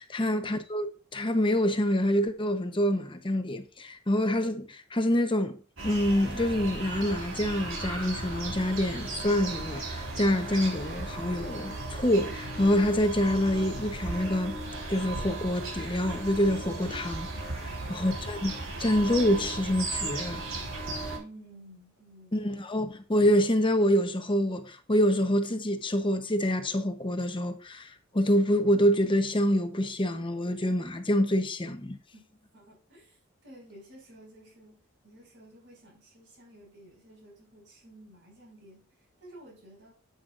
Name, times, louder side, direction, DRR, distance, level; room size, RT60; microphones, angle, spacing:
voice 1, 0.0-5.6 5.8-14.6 14.9-17.3 17.6-18.5 18.8-20.5 22.3-32.0, equal, 25° left, 0.9 m, -26 dB
sound 1, 5.8-21.2, right 2 dB, 90° right, 4.0 m, -36 dB
voice 2, 21.1-22.6 32.5-38.9 39.2-39.9, right 1 dB, 60° right, 5.5 m, -52 dB
10.0 x 8.1 x 2.5 m
head